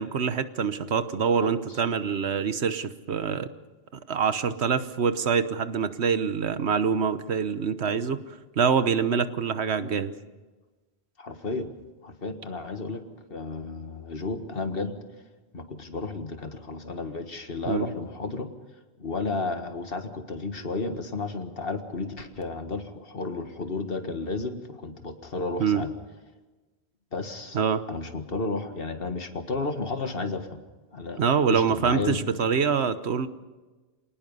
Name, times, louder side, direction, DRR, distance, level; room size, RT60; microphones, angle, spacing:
voice 1, 0.0-3.5 4.1-8.2 8.6-10.1 17.7-17.9 25.6-25.9 27.5-27.8 31.2-33.3, right 6 dB, 85° right, 12 dB, 1.3 m, -25 dB
voice 2, 11.2-11.7 12.0-13.0 13.3-15.0 15.5-18.5 19.0-25.9 27.1-27.6 27.9-30.5 30.9-31.2 31.5-32.2, left 3 dB, 60° left, 7 dB, 1.9 m, -32 dB
26.5 x 19.0 x 5.5 m, 1.2 s
omnidirectional pair, 1.1 m